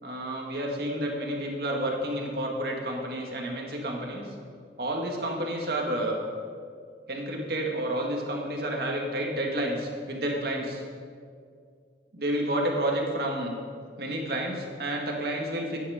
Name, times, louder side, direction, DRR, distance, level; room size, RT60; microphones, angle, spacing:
voice 1, 0.0-4.3 4.8-6.2 7.1-10.8 12.1-13.5 14.0-15.8, right 1 dB, 60° right, 0 dB, 2.0 m, -30 dB
13.0 x 9.6 x 5.0 m, 2.2 s
head